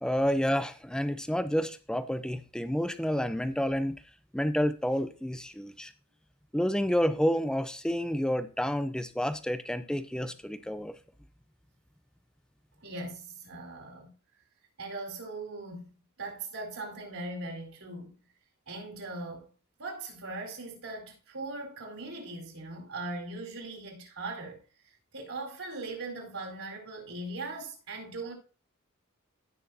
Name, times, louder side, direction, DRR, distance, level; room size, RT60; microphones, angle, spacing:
voice 1, 0.0-3.9 4.3-5.9 6.5-10.9, equal, 5° left, 0.7 m, -29 dB
voice 2, 12.8-14.1 14.8-18.1 18.7-19.5 19.8-24.6 25.1-28.3, right 2 dB, 70° right, 4.4 m, -40 dB
16.5 x 6.3 x 2.8 m
head